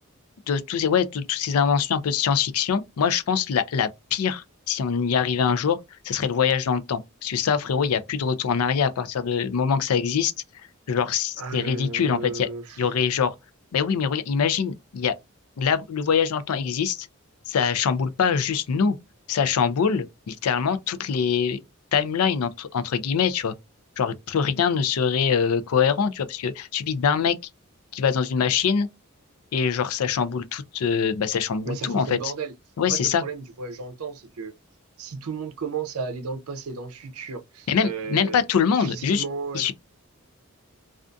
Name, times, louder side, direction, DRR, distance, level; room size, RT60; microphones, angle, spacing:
voice 1, 0.5-5.8 6.0-10.3 10.9-12.5 12.8-13.3 13.7-15.1 15.6-17.1 17.5-19.0 19.3-21.6 21.9-23.5 24.0-27.4 27.9-28.9 29.5-32.3 32.8-33.2 37.7-39.2 39.5-39.7, left 6 dB, 85° left, 0.4 m, -24 dB
voice 2, 11.4-12.9 31.6-32.5 32.8-34.6 35.0-38.4 38.8-39.7, right 4 dB, 80° right, 0.5 m, -34 dB
2.5 x 2.4 x 2.2 m
head